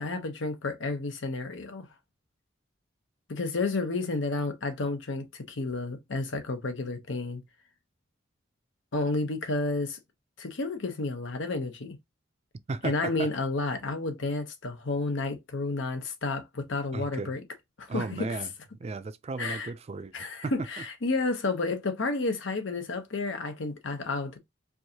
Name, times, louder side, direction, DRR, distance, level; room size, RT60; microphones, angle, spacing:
voice 1, 0.0-1.9 3.3-7.4 8.9-10.0 10.4-12.0 12.8-17.4 17.8-18.3 19.4-19.7 20.1-24.4, left 3 dB, 80° left, 0.9 m, -31 dB
voice 2, 12.7-13.3 16.9-17.3 17.9-18.5 18.8-20.1 20.4-20.5, right 3 dB, 35° right, 0.4 m, -34 dB
4.6 x 2.5 x 2.8 m
head